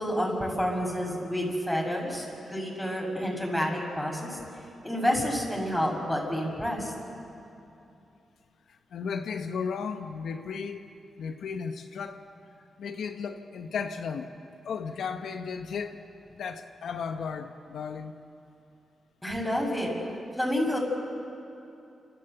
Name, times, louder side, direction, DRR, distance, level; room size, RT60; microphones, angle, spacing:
voice 1, 0.0-4.4 4.8-6.9 19.2-19.9 20.4-20.8, equal, 5° left, -2 dB, 6.8 m, -29 dB
voice 2, 8.7-10.8 11.2-12.2 12.8-14.3 14.6-16.0 16.4-18.1, left 6 dB, 80° left, 6 dB, 1.0 m, -35 dB
30.0 x 13.5 x 8.0 m, 2.7 s
cardioid pair, 65°, 0 cm